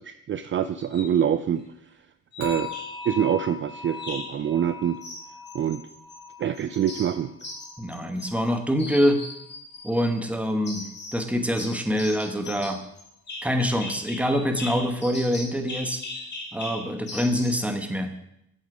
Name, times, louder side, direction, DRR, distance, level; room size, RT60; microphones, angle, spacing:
voice 1, 0.0-1.6 2.4-2.7 3.1-5.0 5.5-5.8 6.4-7.3, right 9 dB, 40° right, 11 dB, 0.4 m, -25 dB
sound 1, 0.8-1.1 2.3-3.1 3.9-4.4 5.0-6.2 6.5-8.5 8.8-10.1 10.6-11.3 11.6-17.7, left 2 dB, 35° left, 2.6 m, -39 dB
sound 2, 2.4-9.5 9.8-10.2 10.7-10.8, left 4 dB, 85° right, 2.5 m, -41 dB
voice 2, 7.8-9.2 9.8-10.9 11.1-12.8 13.4-16.0 16.5-18.1, equal, 5° right, 6 dB, 1.2 m, -25 dB
8.0 x 7.3 x 5.0 m, 0.79 s
cardioid pair, 90°, 30 cm